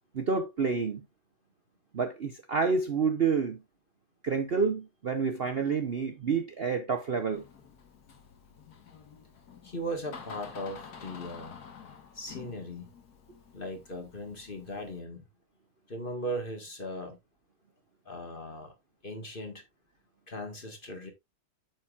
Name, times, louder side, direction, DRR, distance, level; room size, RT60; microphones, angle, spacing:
voice 1, 0.1-1.0 1.9-3.6 4.2-7.4, right 5 dB, 70° right, 0.5 m, -28 dB
Door, 7.3-15.0, left 6 dB, 50° left, 1.8 m, -49 dB
voice 2, 9.6-11.6 12.1-12.9 13.5-15.2 15.9-17.2 18.0-18.7 19.0-19.6 20.3-21.1, equal, 25° left, 1.7 m, -38 dB
9.1 x 7.2 x 2.4 m
omnidirectional pair, 2.3 m